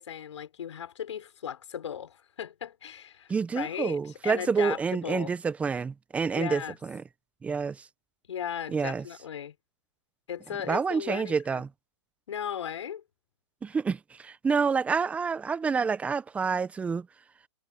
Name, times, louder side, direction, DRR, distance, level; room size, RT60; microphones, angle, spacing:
voice 1, 0.0-5.3 6.3-6.7 8.3-9.5 10.3-11.6 12.3-13.0, left 9 dB, 70° left, 5.7 m, -37 dB
voice 2, 3.3-7.0 7.4-7.9 8.7-9.0 10.7-11.7 13.6-17.1, right 5 dB, 10° right, 0.8 m, -28 dB
hypercardioid pair, 145°, 16 cm